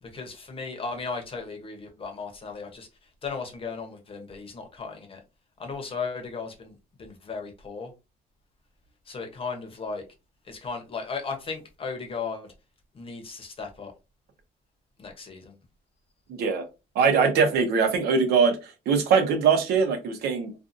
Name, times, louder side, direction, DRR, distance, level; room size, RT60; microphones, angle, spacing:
voice 1, 0.0-5.2 5.6-7.9 9.1-10.1 10.4-12.5 12.9-13.9 15.0-15.6, left 4 dB, 35° left, 0.8 m, -36 dB
voice 2, 16.3-16.6 17.0-18.6 18.9-20.7, right 5 dB, 75° right, 0.8 m, -22 dB
2.6 x 2.4 x 2.5 m
cardioid pair, 110°, 17 cm